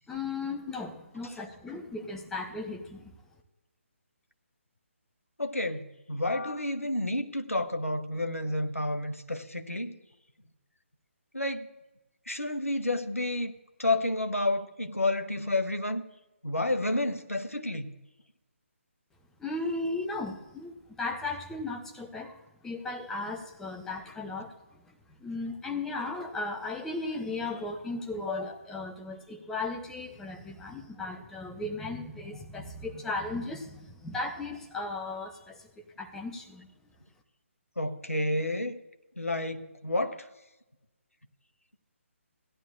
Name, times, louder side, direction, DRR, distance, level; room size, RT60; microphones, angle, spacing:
voice 1, 0.1-3.1 19.4-22.4 22.6-24.8 25.2-35.7 36.0-36.7, left 3 dB, 5° left, 3 dB, 0.8 m, -36 dB
voice 2, 5.4-9.9 11.3-11.7 12.3-13.5 13.8-16.0 16.4-17.9 37.8-38.8 39.2-40.3, left 1 dB, 85° left, 8 dB, 0.9 m, -30 dB
17.0 x 11.0 x 2.5 m, 1.0 s
figure-of-eight pair, 145°, 7 cm